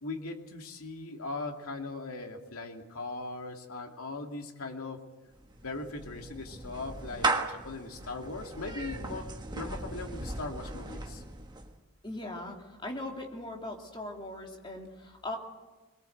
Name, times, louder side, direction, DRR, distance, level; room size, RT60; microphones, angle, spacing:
voice 1, 0.0-5.0 5.6-11.2, left 3 dB, 85° left, 3 dB, 2.6 m, -39 dB
Clapping / Meow, 5.3-11.8, right 2 dB, 20° right, 1.4 m, -36 dB
voice 2, 12.0-15.4, left 1 dB, 20° left, 1 dB, 2.9 m, -39 dB
22.5 x 22.0 x 7.9 m, 1.2 s
head